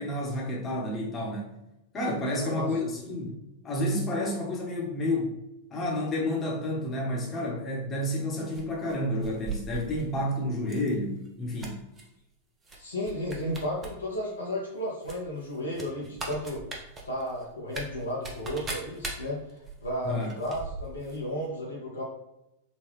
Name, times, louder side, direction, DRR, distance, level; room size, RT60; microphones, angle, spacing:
voice 1, 0.0-1.6 1.9-3.3 3.6-5.3 5.7-11.8 20.0-20.3, left 1 dB, 25° left, -2 dB, 1.0 m, -30 dB
voice 2, 2.2-2.9 12.8-16.6 17.1-22.0, equal, 75° left, -3 dB, 0.7 m, -34 dB
sound 1, 8.5-10.1 10.6-10.9 11.2-12.0 12.6-12.8 13.0-13.9 14.2-14.3 15.0-21.2 21.4-21.5, right 3 dB, 20° right, 0.7 m, -39 dB
3.8 x 2.3 x 3.3 m, 0.89 s
figure-of-eight pair, 90°, 0 cm